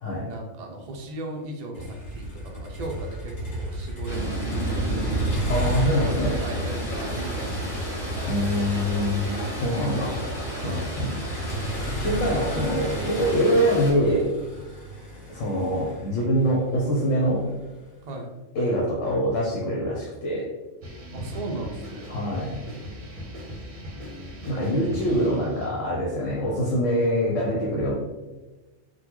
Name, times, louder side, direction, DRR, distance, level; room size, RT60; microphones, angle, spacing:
voice 1, 0.3-4.3 4.6-4.9 6.0-7.7 8.1-8.5 10.6-11.0 18.1-18.3 21.1-22.2 24.5-25.1, right 2 dB, 70° right, 1 dB, 0.4 m, -36 dB
Motor vehicle (road), 1.7-17.9, right 1 dB, 60° left, 1.6 m, -32 dB
sound 1, 4.1-13.9, equal, 40° left, 1.4 m, -33 dB
voice 2, 5.5-6.4 8.3-10.3 10.6-11.1 12.0-14.3 15.3-17.5 18.5-20.5 22.1-22.6 24.5-27.9, equal, 80° left, -3 dB, 1.0 m, -24 dB
sound 2, 20.8-25.8, equal, 45° right, 0.7 m, -39 dB
3.8 x 2.2 x 2.9 m, 1.2 s
omnidirectional pair, 1.3 m